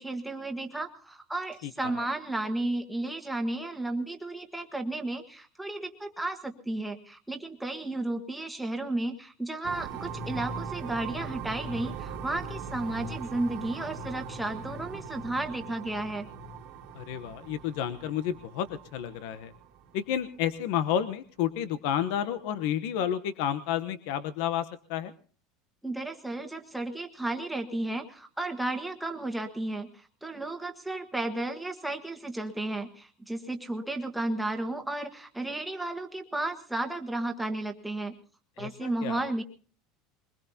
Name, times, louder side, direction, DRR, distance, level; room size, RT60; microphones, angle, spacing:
voice 1, 0.0-16.3 25.8-38.1 38.6-39.4, right 2 dB, ahead, 3 dB, 1.5 m, -33 dB
sound 1, 9.6-20.2, right 4 dB, 50° right, 1.7 m, -40 dB
voice 2, 16.9-19.5 19.9-25.1 38.6-39.2, left 9 dB, 65° left, 13 dB, 0.9 m, -31 dB
22.5 x 21.0 x 2.8 m, 0.41 s
cardioid pair, 160°, 0 cm